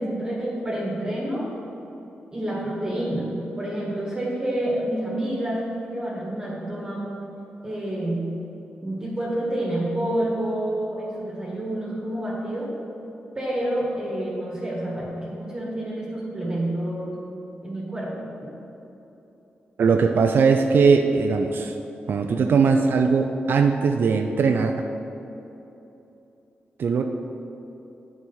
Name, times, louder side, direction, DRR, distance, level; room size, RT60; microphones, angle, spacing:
voice 1, 0.0-1.5 2.3-7.2 7.6-8.3 8.8-12.8 13.4-17.2 17.6-18.4, right 1 dB, 20° right, -6 dB, 1.9 m, -28 dB
voice 2, 19.8-21.8 22.1-24.7 26.8-27.0, right 5 dB, 65° right, 5 dB, 0.4 m, -20 dB
9.2 x 4.8 x 5.5 m, 3.0 s
wide cardioid pair, 105°, 4 cm